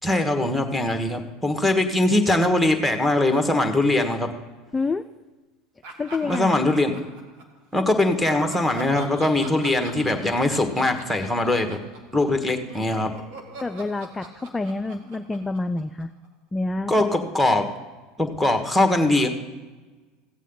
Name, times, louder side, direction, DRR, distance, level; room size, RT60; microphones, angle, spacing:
voice 1, 0.0-4.3 6.2-6.9 7.7-11.8 12.1-13.1 16.9-17.7 18.2-19.3, left 2 dB, ahead, 5 dB, 1.5 m, -21 dB
voice 2, 4.7-5.1 6.0-6.7 13.6-16.1 16.5-16.9 17.2-17.3, left 3 dB, 15° left, 8 dB, 0.4 m, -28 dB
Laughter, 5.8-7.6 8.0-12.4 12.7-16.3, right 2 dB, 60° right, 1.9 m, -42 dB
15.5 x 8.2 x 3.9 m, 1.3 s
hypercardioid pair, 85°, 0 cm